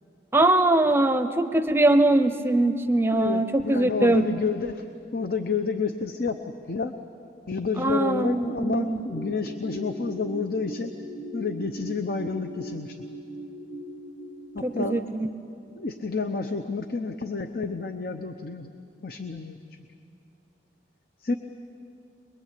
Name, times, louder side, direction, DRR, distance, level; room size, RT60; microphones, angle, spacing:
voice 1, 0.3-4.3 7.8-9.0 14.6-15.3, right 2 dB, 15° right, 9 dB, 0.7 m, -22 dB
voice 2, 3.1-4.8 5.1-6.4 6.7-6.9 7.5-10.9 11.3-13.0 14.5-15.0 15.8-18.7 19.0-19.6 21.2-21.4, left 4 dB, 55° left, 8 dB, 0.8 m, -29 dB
sound 1, 9.1-15.0, right 1 dB, 10° left, 1.0 m, -39 dB
23.0 x 22.5 x 8.4 m, 2.7 s
head